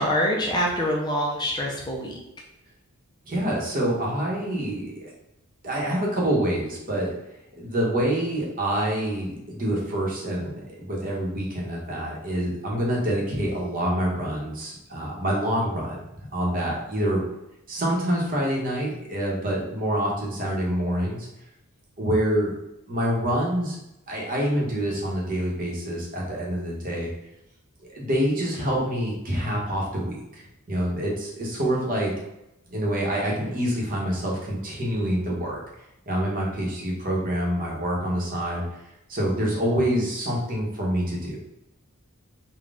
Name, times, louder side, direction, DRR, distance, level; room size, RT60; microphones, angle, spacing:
voice 1, 0.0-2.2, equal, 20° left, -1 dB, 0.5 m, -25 dB
voice 2, 3.3-5.1 5.6-7.1 7.6-16.0 16.3-17.2 17.7-21.3 22.0-22.5 22.9-23.8 24.1-27.1 27.9-32.1 32.7-35.6 36.1-38.6 39.1-41.4, right 1 dB, 40° right, -3 dB, 1.0 m, -26 dB
3.9 x 2.3 x 3.6 m, 0.87 s
head